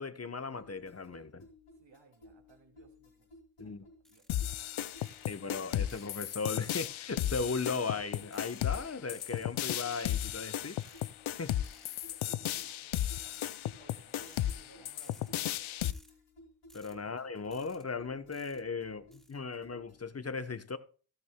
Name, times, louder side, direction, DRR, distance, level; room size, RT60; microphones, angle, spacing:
voice 1, 0.0-1.5 3.6-3.8 5.3-10.8 11.3-11.5 16.7-20.8, left 4 dB, 30° left, 0.9 m, -37 dB
sound 1, 0.6-20.1, left 2 dB, 90° left, 2.8 m, -58 dB
voice 2, 1.8-3.3 3.6-4.3 12.1-15.4 16.1-16.2 17.0-17.2, right 4 dB, 60° right, 2.6 m, -63 dB
sound 2, 4.0-4.4 5.0-5.3 5.9-6.2 6.6-6.9 7.4-7.8 8.3-8.6 9.1-9.4 9.9-10.2 10.8-11.1 11.6-12.0 12.5-12.8 13.3-13.6 14.1-14.4 14.9-15.3 15.8-16.1 16.7-16.9 17.5-17.8 18.3-18.6 19.1-19.3, equal, ahead, 2.7 m, -59 dB
sound 3, 4.3-15.9, left 12 dB, 70° left, 0.6 m, -35 dB
15.5 x 12.0 x 2.2 m
cardioid pair, 40°, 50 cm